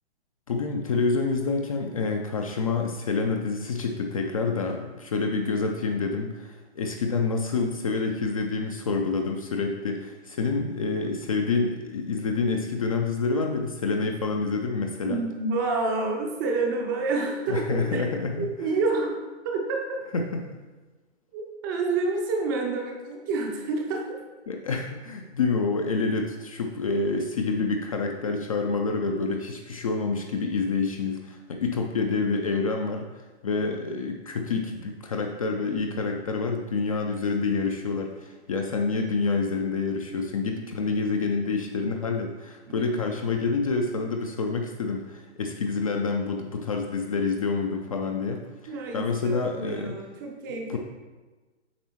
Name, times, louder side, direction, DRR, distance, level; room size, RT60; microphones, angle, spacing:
voice 1, 0.5-15.2 17.5-18.5 20.1-20.4 24.5-49.9 50.7-50.8, left 4 dB, 30° left, 3 dB, 0.4 m, -27 dB
voice 2, 15.1-20.0 21.3-24.2 42.7-43.0 48.7-50.8, right 3 dB, 20° right, 1 dB, 0.5 m, -29 dB
7.9 x 5.2 x 3.0 m, 1.2 s
figure-of-eight pair, 130°, 35 cm